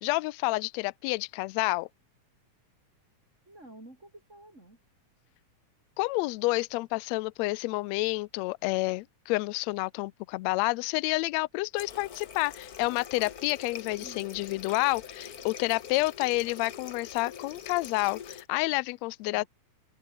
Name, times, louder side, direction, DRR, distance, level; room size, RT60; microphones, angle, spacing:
voice 1, 0.0-1.9 6.0-19.4, left 22 dB, 85° left, 1.6 m, -29 dB
voice 2, 3.5-4.8 14.0-14.2 19.3-19.5, right 1 dB, 20° right, 6.4 m, -50 dB
Water tap faucet, 11.8-18.5, left 8 dB, 65° left, 0.9 m, -44 dB
omnidirectional pair, 3.6 m